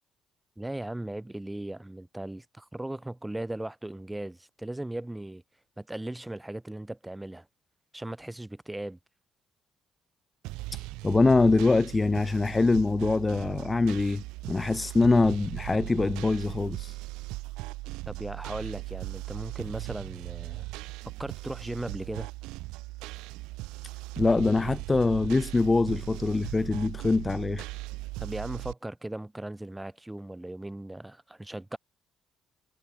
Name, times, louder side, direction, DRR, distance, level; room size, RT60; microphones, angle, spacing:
voice 1, 0.6-5.4 5.8-7.5 7.9-9.0 18.1-20.7 21.2-22.3 28.2-31.8, right 1 dB, 10° right, 4.6 m, -37 dB
sound 1, 10.4-28.7, right 21 dB, 65° right, 1.3 m, -39 dB
voice 2, 10.7-17.0 24.2-27.7, left 3 dB, 25° left, 0.9 m, -24 dB
figure-of-eight pair, 45°, 0 cm